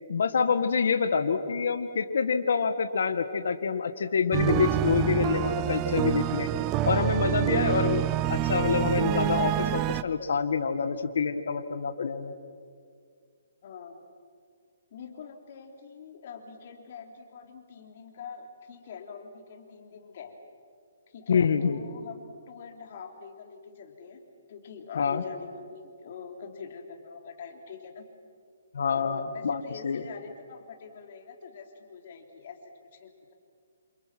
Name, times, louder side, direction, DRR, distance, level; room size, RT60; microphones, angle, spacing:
voice 1, 0.1-6.5 6.8-8.0 8.3-12.3 21.3-21.8 25.0-25.2 28.7-30.0, left 5 dB, 65° left, 8 dB, 1.6 m, -26 dB
sound 1, 4.3-10.0, right 13 dB, 20° right, 0.7 m, -27 dB
voice 2, 13.6-13.9 14.9-20.4 21.1-24.2 24.5-28.1 28.9-33.3, left 6 dB, 45° left, 3 dB, 3.4 m, -44 dB
28.0 x 28.0 x 6.1 m, 2.2 s
hypercardioid pair, 160°, 0 cm